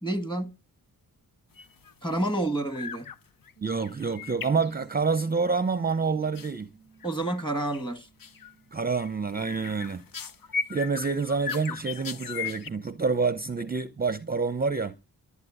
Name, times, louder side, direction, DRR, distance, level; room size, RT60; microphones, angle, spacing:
voice 1, 0.0-0.6 2.0-3.1 7.0-8.1, right 1 dB, 10° left, 1.8 m, -29 dB
sound 1, 1.5-1.9 2.2-2.4 2.7-3.2 3.5-5.2 6.3-6.5 7.0-7.4 7.7-7.9 8.2-8.5 8.9-12.7, left 6 dB, 60° left, 1.0 m, -37 dB
voice 2, 3.6-6.7 8.7-10.0 10.7-14.9, right 4 dB, 25° right, 0.7 m, -27 dB
sound 2, 7.8-9.6 10.0-11.4, right 6 dB, 30° left, 3.4 m, -56 dB
12.0 x 8.4 x 9.9 m
wide cardioid pair, 150°, 38 cm